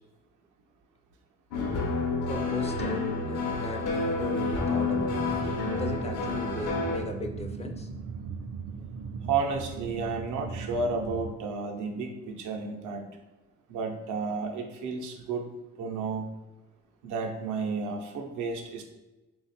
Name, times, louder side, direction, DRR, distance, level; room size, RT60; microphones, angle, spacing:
sound 1, 1.5-7.0, left 3 dB, 80° left, 0.8 m, -29 dB
voice 1, 2.3-5.4 5.7-7.9, left 2 dB, 20° left, 5 dB, 0.3 m, -38 dB
sound 2, 4.4-11.3, right 5 dB, 45° right, 0.4 m, -38 dB
voice 2, 9.2-13.1 13.7-15.4 15.8-16.2 17.0-18.8, right 4 dB, 80° right, 2 dB, 0.7 m, -32 dB
3.2 x 2.3 x 4.2 m, 1.1 s
cardioid pair, 90°, 30 cm